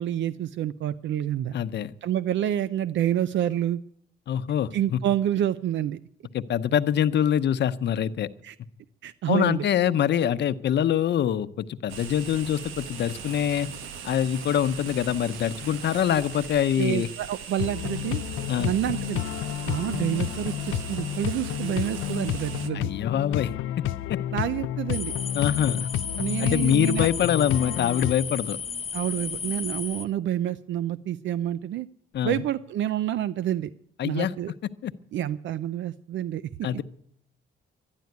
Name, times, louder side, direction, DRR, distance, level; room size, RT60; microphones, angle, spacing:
voice 1, 0.0-1.5 2.0-3.8 4.7-6.0 8.4-8.6 9.0-9.7 16.8-18.2 18.6-19.2 19.7-22.9 24.3-25.1 26.2-27.1 28.9-31.9 32.2-33.7 34.0-34.5 35.1-36.4, right 11 dB, 70° right, 16 dB, 0.5 m, -28 dB
voice 2, 1.5-1.9 4.3-5.0 6.3-8.3 9.3-13.7 14.0-17.1 18.5-18.7 22.7-23.5 24.1-24.2 25.3-25.9 26.4-28.6 32.1-32.4 34.0-34.3 34.8-34.9 36.6-36.8, left 10 dB, 60° left, 12 dB, 0.8 m, -24 dB
sound 1, 11.9-22.7, right 7 dB, 85° right, 1.0 m, -39 dB
sound 2, 17.6-28.1, left 13 dB, 90° left, 0.5 m, -31 dB
sound 3, 24.9-30.1, left 6 dB, 30° left, 0.9 m, -34 dB
12.0 x 10.5 x 9.3 m, 0.70 s
cardioid pair, 90°, 20 cm